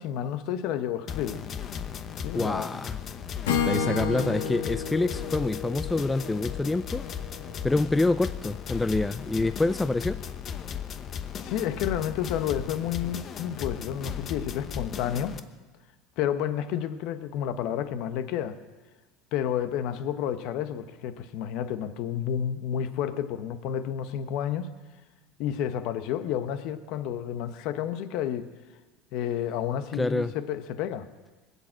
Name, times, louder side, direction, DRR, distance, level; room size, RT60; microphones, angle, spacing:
voice 1, 0.0-1.4 2.2-2.7 11.4-15.3 16.2-18.6 19.3-24.7 25.4-28.5 29.1-31.1, left 10 dB, 65° left, 11 dB, 1.1 m, -30 dB
sound 1, 1.1-15.4, left 8 dB, 40° left, 0.9 m, -36 dB
voice 2, 2.3-3.0 3.6-7.0 7.6-10.2 30.0-30.3, left 2 dB, 10° left, 12 dB, 0.4 m, -26 dB
Acoustic guitar / Strum, 3.4-7.4, left 6 dB, 85° left, 1.6 m, -31 dB
20.5 x 8.4 x 7.5 m, 1.3 s
supercardioid pair, 105°, 0 cm